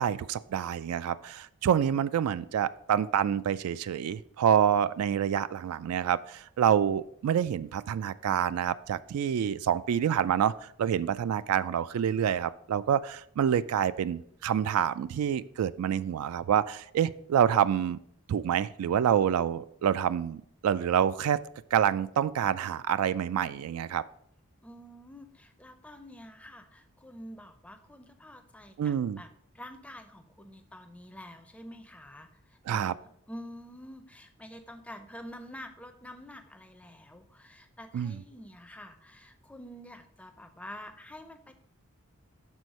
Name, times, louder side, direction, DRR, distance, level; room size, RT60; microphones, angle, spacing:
voice 1, 0.0-18.0 18.3-21.4 21.7-24.0 28.8-29.2 32.7-32.9 37.9-38.2, right 9 dB, 85° right, 16 dB, 0.3 m, -27 dB
voice 2, 24.6-29.3 29.5-32.9 33.3-41.5, equal, 5° left, 7 dB, 0.4 m, -47 dB
6.3 x 4.2 x 5.3 m, 0.69 s
head